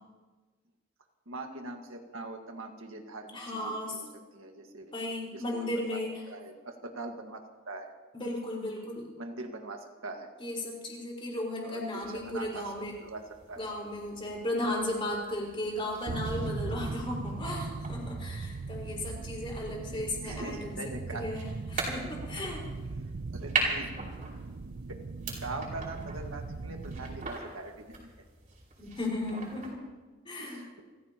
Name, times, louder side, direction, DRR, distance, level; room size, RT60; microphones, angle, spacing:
voice 1, 1.3-4.1 4.3-4.9 5.3-6.0 6.3-7.4 7.7-7.9 9.2-10.3 11.6-12.7 13.0-13.2 13.5-13.6 16.7-16.8 20.2-21.3 23.3-23.9 25.2-28.1 30.4-30.8, right 2 dB, 70° right, 3 dB, 1.7 m, -42 dB
voice 2, 3.3-4.0 4.9-6.2 8.1-9.1 10.4-12.9 13.6-22.7 28.8-29.8 30.2-30.6, left 1 dB, 25° left, -2 dB, 4.7 m, -35 dB
sound 1, 12.0-29.7, right 3 dB, 40° right, 5.2 m, -41 dB
sound 2, 16.1-27.3, right 3 dB, 55° right, 0.5 m, -39 dB
29.5 x 15.5 x 3.0 m, 1.3 s
head